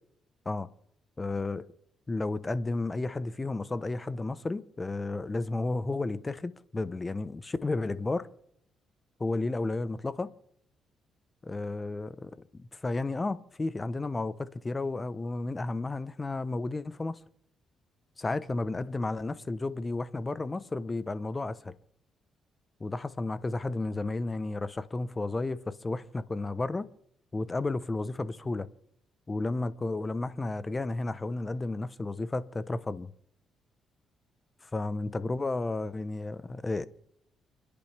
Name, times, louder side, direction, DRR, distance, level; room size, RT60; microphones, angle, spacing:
voice 1, 1.2-1.6 2.1-8.3 9.2-10.3 11.4-17.2 18.2-21.7 22.8-26.9 27.3-28.7 29.3-33.1 34.6-36.9, left 2 dB, 25° left, 0.9 m, -32 dB
30.0 x 10.5 x 3.4 m
cardioid pair, 90°, 0 cm